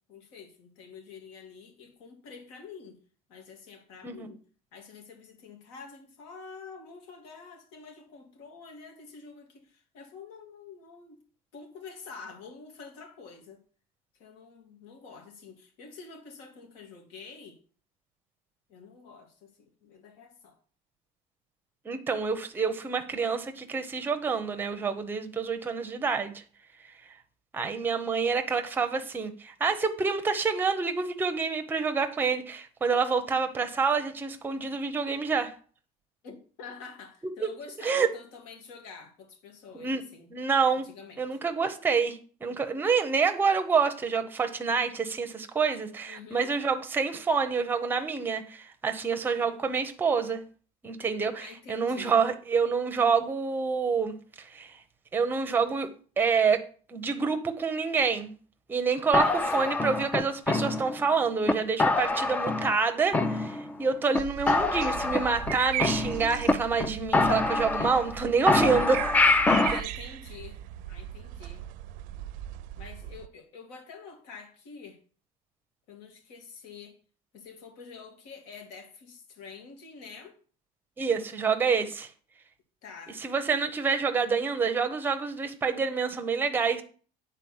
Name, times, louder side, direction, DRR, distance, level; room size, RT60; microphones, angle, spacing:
voice 1, 0.1-3.0 3.3-4.4 4.7-11.2 11.5-13.6 14.2-17.6 18.7-20.6 36.2-40.3 40.8-41.4 46.1-46.5 51.4-52.2 59.2-59.8 69.6-70.6 70.9-71.6 72.8-75.0 75.9-77.0 77.3-80.4 82.8-83.2, left 5 dB, 75° left, 3 dB, 2.7 m, -47 dB
voice 2, 21.8-26.3 27.5-35.5 37.4-37.5 37.8-38.1 39.7-40.0 40.3-40.9 41.2-50.4 50.8-54.8 55.1-55.9 56.2-56.6 56.9-58.3 58.7-59.3 59.5-69.1 81.0-82.1 83.2-86.8, right 5 dB, 10° right, 7 dB, 0.7 m, -27 dB
sound 1, 59.1-61.1 61.5-61.6 61.8-62.8 63.1-63.8 64.1-64.2 64.5-66.5 66.8-66.9 67.1-68.2 68.5-69.8, left 3 dB, 10° left, 0.3 m, -25 dB
sound 2, 64.2-73.3, right 13 dB, 55° right, 0.5 m, -37 dB
8.9 x 4.2 x 7.1 m, 0.42 s
cardioid pair, 180°, 16 cm